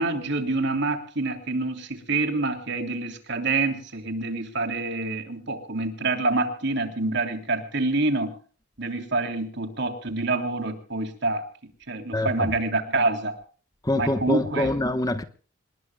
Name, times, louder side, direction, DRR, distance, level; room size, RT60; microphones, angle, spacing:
voice 1, 0.0-8.3 8.8-11.5 11.9-13.4 14.0-14.7, right 2 dB, 55° right, 3.2 m, -27 dB
voice 2, 12.1-12.5 13.8-15.2, left 1 dB, 15° left, 1.0 m, -25 dB
27.5 x 20.5 x 2.3 m
head